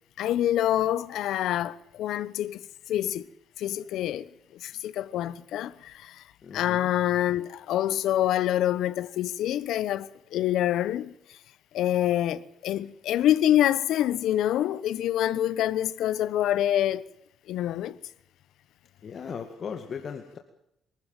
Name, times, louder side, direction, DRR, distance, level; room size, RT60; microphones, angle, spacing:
voice 1, 0.2-2.6 2.9-3.3 3.6-4.3 4.6-6.2 6.5-11.1 11.7-17.0 17.5-18.0, left 12 dB, 80° left, 1.1 m, -26 dB
voice 2, 6.4-6.9 19.0-20.4, left 6 dB, 45° left, 2.2 m, -37 dB
24.0 x 14.0 x 9.0 m
cardioid pair, 130°, 0 cm